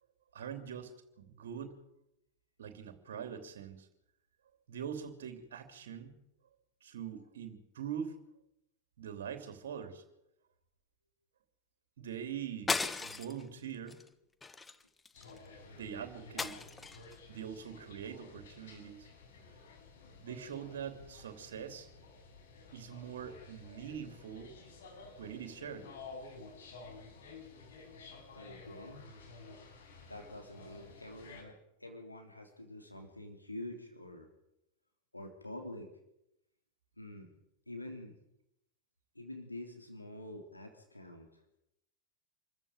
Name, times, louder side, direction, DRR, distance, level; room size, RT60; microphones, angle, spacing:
voice 1, 0.3-1.8 2.6-3.9 4.7-6.1 6.8-8.2 9.0-10.0 12.0-14.0 15.7-16.6 17.3-19.1 20.2-21.9 22.7-24.5 25.2-25.9, right 8 dB, 60° right, 8 dB, 3.0 m, -43 dB
sound 1, 12.7-13.4 13.9-14.1 14.4-15.4 16.4-17.1, left 4 dB, 10° left, 1.2 m, -36 dB
sound 2, 15.1-31.4, left 3 dB, 60° left, 6.5 m, -53 dB
voice 2, 28.3-29.1 30.1-34.3 35.1-35.9 37.0-37.3 37.7-38.1 39.1-41.6, left 1 dB, 85° left, 4 dB, 3.3 m, -47 dB
27.0 x 14.5 x 8.8 m, 0.83 s
figure-of-eight pair, 90°, 0 cm